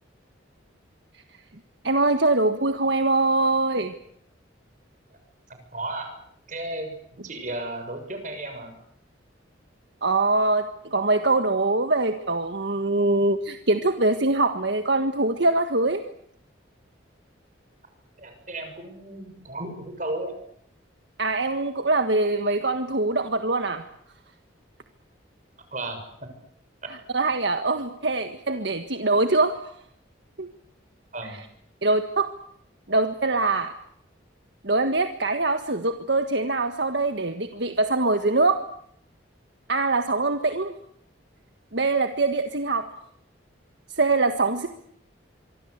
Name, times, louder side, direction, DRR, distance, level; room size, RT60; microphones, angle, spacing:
voice 1, 1.8-3.9 10.0-16.0 21.2-23.8 27.1-29.7 30.4-30.5 31.2-31.3 31.8-32.4 32.9-33.7 34.6-38.6 39.7-40.7 41.7-42.9 43.9-44.7, right 2 dB, 65° right, 7 dB, 1.6 m, -23 dB
voice 2, 5.7-6.1 6.5-6.9 7.2-8.7 18.2-20.3 25.7-26.1 26.8-26.9 31.1-31.4, right 2 dB, 40° right, 6 dB, 6.7 m, -34 dB
25.0 x 24.5 x 8.2 m, 0.68 s
head